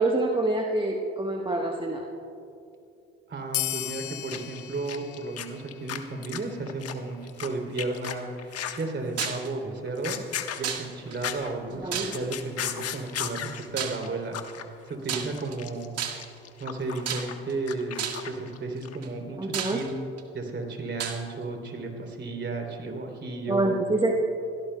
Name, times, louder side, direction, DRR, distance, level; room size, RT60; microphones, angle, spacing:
voice 1, 0.0-2.1 11.8-11.9 19.4-19.8 23.5-24.2, right 2 dB, 15° right, 1 dB, 1.3 m, -26 dB
voice 2, 3.3-10.2 10.6-14.4 14.9-15.9 16.6-20.0 20.3-23.7, right 3 dB, 35° right, 2 dB, 3.3 m, -33 dB
sound 1, 3.5-6.6, left 17 dB, 75° left, 0.7 m, -36 dB
sound 2, 4.3-4.6 4.8-7.5 7.8-8.8 9.2-9.5 9.9-11.5 11.8-13.7 14.0-14.1 14.3-14.6 14.9-18.6 18.8-19.0, left 9 dB, 50° left, 1.3 m, -35 dB
sound 3, 9.2-9.5 10.6-11.2 11.9-12.4 13.8-14.1 15.0-15.6 16.0-16.4 17.1-17.5 18.0-18.3 19.0-19.1 19.5-20.2 21.0-21.2, right 8 dB, 50° right, 1.7 m, -32 dB
27.5 x 17.5 x 2.3 m, 2.6 s
hypercardioid pair, 60°, 31 cm